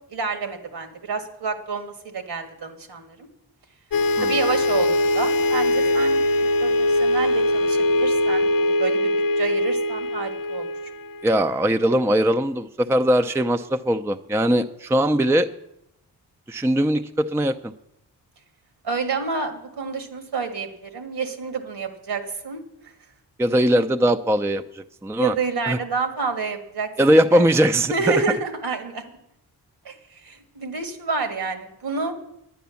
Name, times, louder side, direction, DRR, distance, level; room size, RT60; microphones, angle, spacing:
voice 1, 0.1-3.3 4.2-10.7 18.8-22.9 25.2-27.5 27.9-29.0 29.9-32.1, right 4 dB, 80° right, 7 dB, 1.8 m, -29 dB
sound 1, 3.9-11.7, left 1 dB, 60° left, 0.7 m, -21 dB
voice 2, 11.2-15.5 16.5-17.7 23.4-25.3 25.7-25.8 27.0-27.9, equal, 5° right, 8 dB, 0.5 m, -20 dB
10.5 x 9.3 x 7.0 m, 0.81 s
cardioid pair, 65°, 39 cm